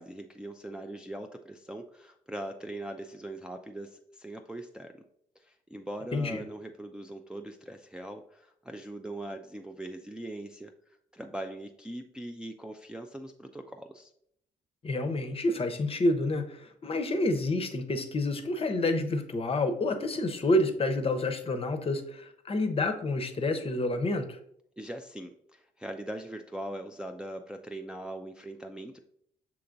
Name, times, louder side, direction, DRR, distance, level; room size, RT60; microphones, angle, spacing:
voice 1, 0.0-5.0 5.4-10.7 11.1-14.1 24.8-29.0, right 1 dB, 5° right, 4 dB, 0.3 m, -41 dB
voice 2, 14.8-24.4, left 2 dB, 30° left, 7 dB, 0.7 m, -28 dB
6.6 x 2.9 x 2.6 m, 0.69 s
hypercardioid pair, 45°, 18 cm